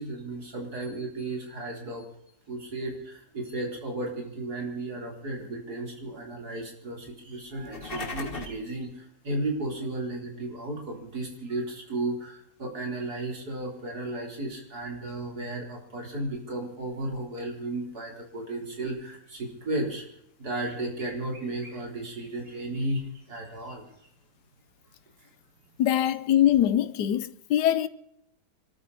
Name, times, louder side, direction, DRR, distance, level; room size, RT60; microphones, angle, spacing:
voice 1, 0.0-2.0 2.5-20.0 20.4-23.0 23.3-23.8, right 2 dB, 65° right, 4.5 m, -34 dB
sound 1, 7.5-8.7, left 3 dB, 35° left, 1.7 m, -37 dB
voice 2, 25.8-27.9, left 11 dB, 85° left, 1.4 m, -23 dB
25.5 x 13.5 x 4.2 m
omnidirectional pair, 1.8 m